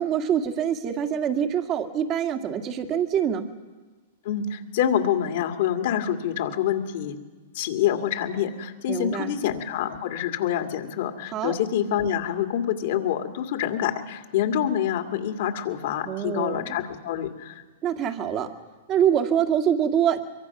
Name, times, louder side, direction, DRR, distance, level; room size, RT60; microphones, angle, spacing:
voice 1, 0.0-3.5 8.9-9.3 11.3-11.5 16.1-16.8 17.8-18.5 18.9-20.2, right 9 dB, 35° right, 6 dB, 1.9 m, -25 dB
voice 2, 4.2-7.2 7.5-17.6, left 10 dB, 65° left, 4 dB, 2.2 m, -26 dB
23.5 x 23.0 x 6.1 m, 1.3 s
hypercardioid pair, 130°, 0 cm